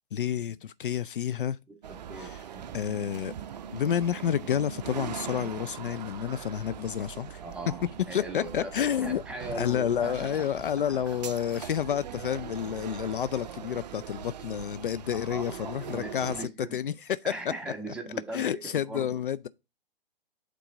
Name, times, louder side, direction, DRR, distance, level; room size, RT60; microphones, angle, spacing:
voice 1, 0.1-1.6 2.2-2.4 2.7-3.3 3.7-7.4 8.1-9.2 9.6-17.2 18.3-19.5, left 9 dB, 65° left, 0.4 m, -30 dB
voice 2, 1.7-2.7 7.4-8.7 9.0-10.4 10.9-11.0 15.1-16.8 17.2-19.2, right 2 dB, 5° right, 1.2 m, -40 dB
sound 1, 1.8-16.5, right 9 dB, 45° right, 0.5 m, -41 dB
8.5 x 3.8 x 3.7 m
figure-of-eight pair, 125°, 29 cm